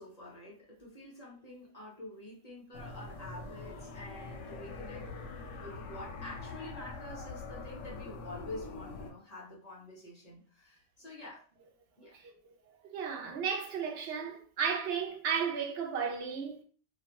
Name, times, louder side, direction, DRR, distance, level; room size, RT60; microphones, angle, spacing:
voice 1, 0.0-5.1 5.6-11.5 12.0-12.2, left 1 dB, 40° left, 0.7 m, -47 dB
sound 1, 2.7-9.1, left 3 dB, 75° left, 0.9 m, -44 dB
voice 2, 12.8-16.6, right 6 dB, 60° right, 0.8 m, -34 dB
2.4 x 2.1 x 2.8 m
omnidirectional pair, 1.3 m